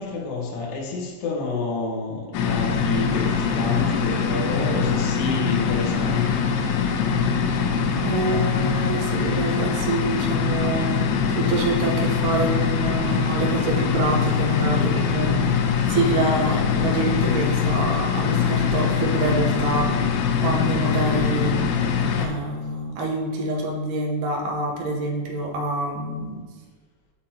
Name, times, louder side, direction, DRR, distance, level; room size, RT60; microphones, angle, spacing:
voice 1, 0.0-6.4 12.2-12.3, left 3 dB, 70° left, 2.4 m, -28 dB
sound 1, 2.3-22.3, left 6 dB, 85° left, 3.0 m, -23 dB
voice 2, 8.0-15.6 15.9-21.7 22.2-26.5, right 2 dB, 70° right, 2.0 m, -26 dB
8.0 x 6.9 x 2.9 m
omnidirectional pair, 5.2 m